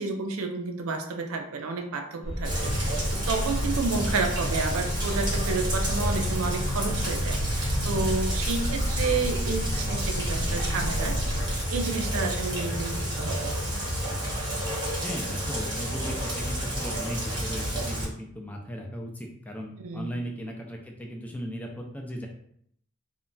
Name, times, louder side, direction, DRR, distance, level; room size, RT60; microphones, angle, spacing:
voice 1, 0.0-11.4 11.7-13.5 14.1-14.3 19.8-20.1, right 4 dB, 80° right, 5 dB, 0.4 m, -31 dB
sound 1, 2.2-11.6, equal, 70° left, 0.8 m, -32 dB
Rain, 2.4-18.0, equal, 20° right, 0.8 m, -30 dB
voice 2, 15.0-22.3, equal, 5° left, 1 dB, 0.3 m, -37 dB
2.2 x 2.1 x 3.7 m, 0.68 s
head